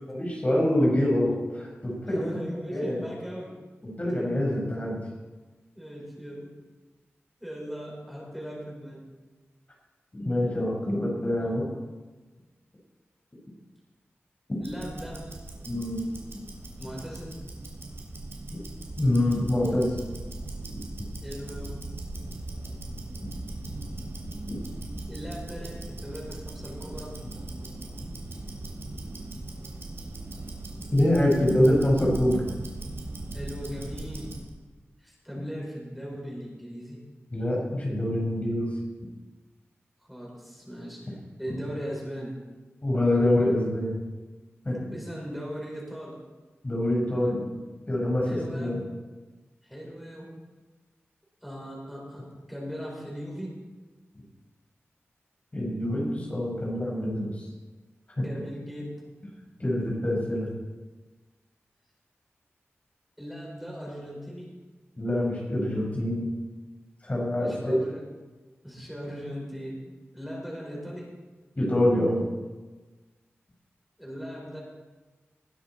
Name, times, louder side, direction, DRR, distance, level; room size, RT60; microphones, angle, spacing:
voice 1, 0.1-2.3 2.7-3.1 3.8-5.0 10.1-11.7 14.5-14.6 15.7-16.1 19.0-20.0 24.5-24.6 30.9-32.4 37.3-38.7 41.5-41.6 42.8-43.9 44.6-44.9 46.6-47.4 47.9-48.8 55.5-57.5 58.1-58.2 59.6-60.5 65.0-66.3 67.0-67.7 71.5-72.2, left 1 dB, 35° left, -3 dB, 4.8 m, -25 dB
voice 2, 2.0-3.6 5.7-6.6 7.4-9.0 11.4-11.5 14.6-15.3 16.8-17.5 21.2-21.8 25.1-27.2 33.3-34.5 35.0-37.1 40.1-42.4 44.9-46.2 48.2-48.8 49.6-50.3 51.4-53.6 58.2-59.1 63.2-64.5 67.3-68.1 68.6-69.8 70.1-71.2 74.0-74.6, equal, ahead, -3 dB, 5.0 m, -39 dB
Tick-tock, 14.6-34.5, right 2 dB, 65° right, 3.3 m, -39 dB
20.0 x 10.0 x 4.3 m, 1.3 s
wide cardioid pair, 70°, 5 cm